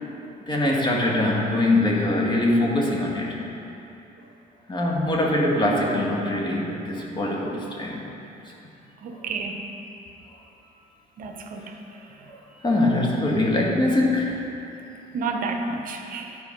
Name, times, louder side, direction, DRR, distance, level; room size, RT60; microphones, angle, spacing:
voice 1, 0.5-3.4 4.7-8.1 9.2-9.3 12.3-14.4, left 1 dB, 25° left, -2 dB, 1.5 m, -23 dB
voice 2, 9.0-9.6 11.2-11.7 15.1-16.4, right 4 dB, 55° right, 4 dB, 0.7 m, -30 dB
10.5 x 4.6 x 5.2 m, 2.9 s
cardioid pair, 110°, 17 cm